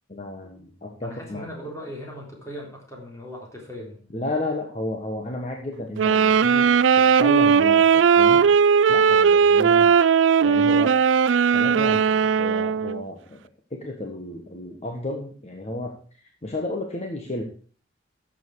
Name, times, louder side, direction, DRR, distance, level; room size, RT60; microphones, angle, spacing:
voice 1, 0.1-1.5 4.1-8.5 8.9-9.9 10.4-11.0 11.5-13.4 13.7-17.4, left 2 dB, 35° left, 2 dB, 1.4 m, -32 dB
voice 2, 1.0-4.0, equal, 15° left, -1 dB, 3.6 m, -38 dB
sound 1, 6.0-13.0, right 6 dB, 80° right, 0.4 m, -18 dB
12.5 x 7.7 x 4.8 m, 0.41 s
head